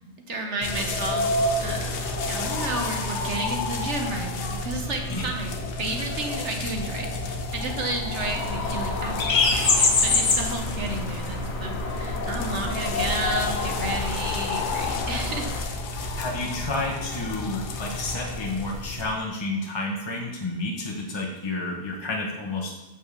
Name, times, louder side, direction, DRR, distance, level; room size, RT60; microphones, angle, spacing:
voice 1, 0.3-5.5 5.8-9.2 9.5-15.5, right 2 dB, 50° right, 3 dB, 1.1 m, -32 dB
sound 1, 0.6-19.1, left 2 dB, 90° left, 1.5 m, -30 dB
sound 2, 8.2-15.6, left 3 dB, 45° left, 1.2 m, -27 dB
voice 2, 15.9-22.8, left 2 dB, 25° left, 0 dB, 0.7 m, -30 dB
7.1 x 5.4 x 6.5 m, 0.98 s
omnidirectional pair, 1.7 m